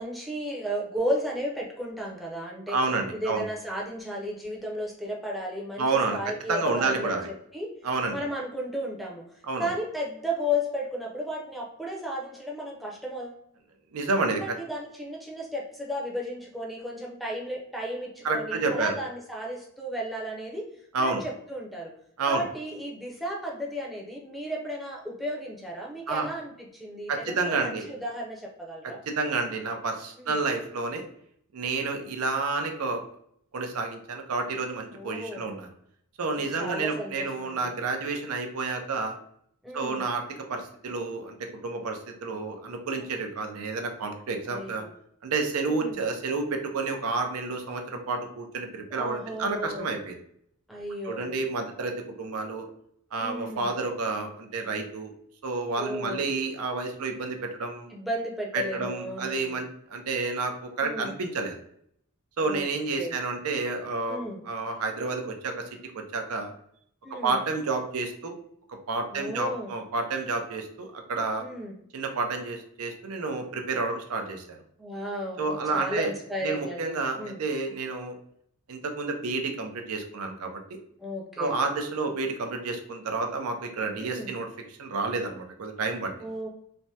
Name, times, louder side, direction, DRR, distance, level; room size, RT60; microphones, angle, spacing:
voice 1, 0.0-2.8 3.1-7.2 7.5-7.7 8.1-9.2 9.6-13.4 14.4-20.7 21.0-21.9 22.3-29.0 30.2-30.4 34.9-35.5 36.4-37.7 39.6-40.0 43.0-43.1 44.5-44.9 45.7-46.0 48.9-49.9 50.7-51.3 53.2-53.7 55.8-56.3 57.9-59.6 60.8-61.1 62.4-62.6 62.9-63.1 64.1-64.4 67.0-67.4 69.1-69.7 71.4-71.7 74.8-77.4 81.0-81.6 84.0-84.3 86.2-86.5, equal, ahead, -2 dB, 0.5 m, -34 dB
voice 2, 2.7-3.4 5.8-6.2 6.5-7.3 7.8-8.2 9.5-9.7 13.9-14.4 18.2-19.0 20.9-21.2 22.2-22.4 26.1-26.3 27.1-27.9 29.1-31.0 31.5-33.0 33.5-35.7 36.2-39.2 39.7-40.2 40.5-44.9 45.2-50.2 51.0-52.7 53.1-55.1 55.4-57.9 58.5-61.6 62.4-64.2 64.4-65.6 65.9-66.5 67.1-68.4 68.9-71.4 71.9-74.6 75.4-76.1 76.4-78.2 78.7-80.8 81.4-86.3, right 3 dB, 85° right, 4 dB, 0.5 m, -30 dB
3.3 x 2.1 x 2.7 m, 0.70 s
head